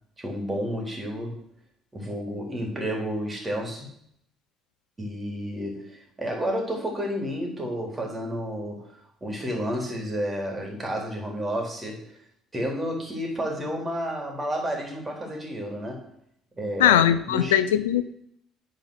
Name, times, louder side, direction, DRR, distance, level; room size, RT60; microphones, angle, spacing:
voice 1, 0.2-1.4 1.9-3.9 5.0-12.2 12.5-16.1 16.6-17.6, equal, 25° right, 0 dB, 3.9 m, -31 dB
voice 2, 16.8-18.0, left 11 dB, 85° left, 13 dB, 0.4 m, -20 dB
9.2 x 5.1 x 6.5 m, 0.70 s
hypercardioid pair, 55°, 0 cm